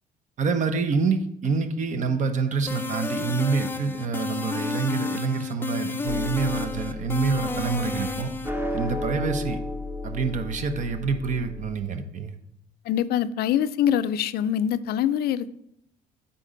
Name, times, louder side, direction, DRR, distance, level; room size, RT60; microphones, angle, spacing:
voice 1, 0.4-8.3 8.7-9.6 10.0-12.4, right 5 dB, 45° right, 0.8 m, -27 dB
sound 1, 2.7-8.5, left 3 dB, 15° left, 0.5 m, -31 dB
sound 2, 6.1-11.8, left 2 dB, 15° right, 0.9 m, -34 dB
voice 2, 12.9-15.6, left 10 dB, 70° left, 0.4 m, -24 dB
8.4 x 3.9 x 5.1 m
cardioid pair, 110°, 17 cm